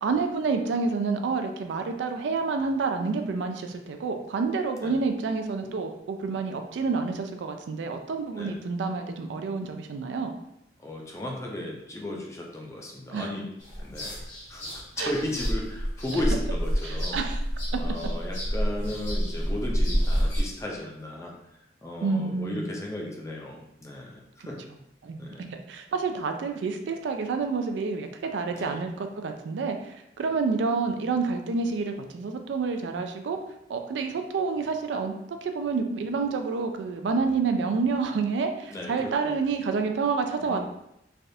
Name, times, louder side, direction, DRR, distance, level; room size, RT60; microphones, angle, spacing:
voice 1, 0.0-10.3 13.1-13.3 15.0-15.1 16.8-17.4 22.0-22.7 25.0-33.4 33.7-35.1 35.4-40.7, right 4 dB, 80° right, 6 dB, 0.3 m, -28 dB
voice 2, 10.8-13.5 13.8-17.2 17.7-21.3 21.8-24.6 25.2-25.4 28.5-28.9 38.7-39.3 40.4-40.7, left 1 dB, 15° left, -1 dB, 0.4 m, -35 dB
sound 1, 13.6-20.4, equal, 40° left, 0.9 m, -28 dB
3.3 x 2.3 x 2.6 m, 0.80 s
head